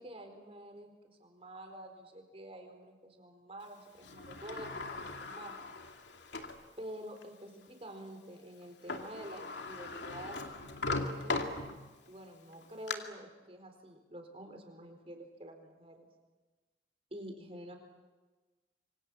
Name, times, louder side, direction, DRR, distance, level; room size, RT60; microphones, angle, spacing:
voice 1, 0.0-5.6 6.8-10.4 10.7-11.6 12.1-16.1 17.1-17.8, right 1 dB, 35° right, 5 dB, 4.3 m, -48 dB
Sliding door, 4.0-6.6 7.2-7.3 8.6-8.7 8.9-12.1 12.5-12.9, left 3 dB, 85° left, 2.5 m, -39 dB
27.0 x 24.5 x 7.5 m, 1.3 s
head